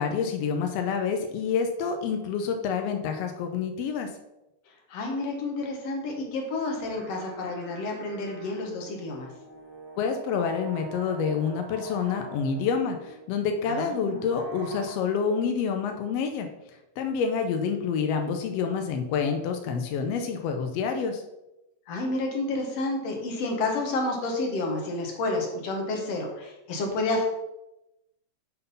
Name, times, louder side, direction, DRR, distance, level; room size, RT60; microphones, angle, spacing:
voice 1, 0.0-4.1 10.0-16.5 17.0-21.2, left 6 dB, 80° left, 5 dB, 1.4 m, -28 dB
voice 2, 4.9-9.3 13.7-14.3 21.9-27.2, left 2 dB, 60° left, 1 dB, 2.2 m, -30 dB
sound 1, 6.7-14.9, right 3 dB, 25° right, 0.8 m, -45 dB
7.7 x 4.0 x 5.4 m, 0.93 s
omnidirectional pair, 3.6 m